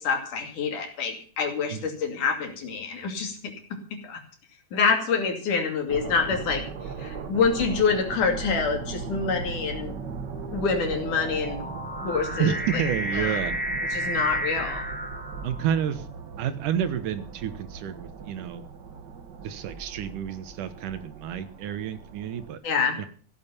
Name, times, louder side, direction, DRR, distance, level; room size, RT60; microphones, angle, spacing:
voice 1, 0.0-3.4 3.9-4.2 4.7-6.6 7.0-9.9 10.5-11.6 12.0-12.8 13.2-13.4 13.9-14.9 22.6-23.0, left 5 dB, 75° left, 4 dB, 4.1 m, -26 dB
sound 1, 5.9-22.5, right 5 dB, 50° right, 1.4 m, -38 dB
sound 2, 6.6-7.0 7.8-16.0, equal, 10° left, 0.4 m, -34 dB
voice 2, 12.4-13.6 15.4-16.1 16.4-18.6 19.4-22.6 23.0-23.1, right 9 dB, 85° right, 11 dB, 2.9 m, -30 dB
15.5 x 9.0 x 7.2 m, 0.43 s
omnidirectional pair, 3.6 m